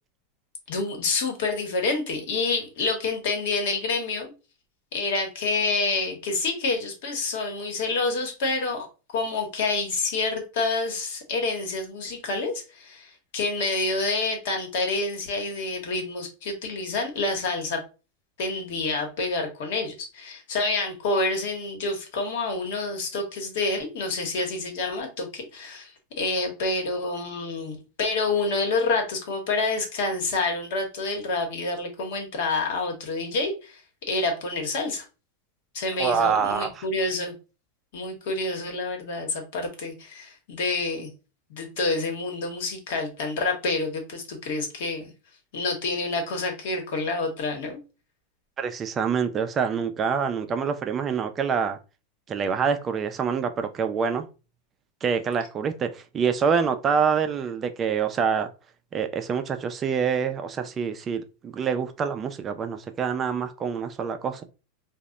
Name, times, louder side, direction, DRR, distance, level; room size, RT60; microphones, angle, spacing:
voice 1, 0.7-4.3 4.9-8.9 9.1-17.8 18.4-33.8 34.1-35.0 35.7-37.3 37.9-41.1 41.5-45.1 45.5-47.8, left 3 dB, 70° left, 0.9 m, -28 dB
voice 2, 36.0-36.8 48.6-51.8 52.3-54.3 55.0-58.5 58.9-64.5, right 6 dB, 30° right, 0.3 m, -26 dB
2.1 x 2.0 x 3.7 m
hypercardioid pair, 115°, 0 cm